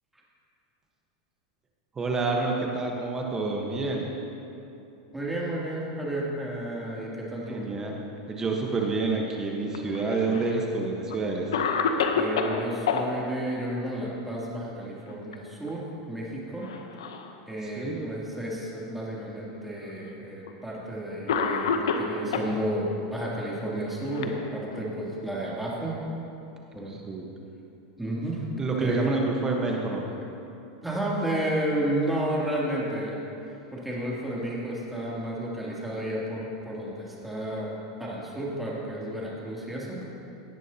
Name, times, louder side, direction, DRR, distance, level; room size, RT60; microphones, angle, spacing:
voice 1, 2.0-4.1 7.4-7.9 8.3-11.6 17.6-18.1 26.9-27.3 28.6-30.1, right 3 dB, 20° right, 0 dB, 1.2 m, -28 dB
voice 2, 5.1-7.6 12.1-16.7 17.5-25.9 26.7-27.0 28.0-28.4 28.8-29.0 30.8-33.2 33.7-40.0, right 1 dB, 5° right, -6 dB, 2.9 m, -32 dB
Cough, 9.7-10.6 11.1-11.2 11.5-13.0 14.9-15.3 15.7-15.8 16.6-17.3 18.1-18.2 19.2-19.3 20.5-20.6 21.3-22.5 23.5-24.9, left 6 dB, 85° left, 0.9 m, -28 dB
17.0 x 10.5 x 2.9 m, 2.8 s
supercardioid pair, 120°, 3 cm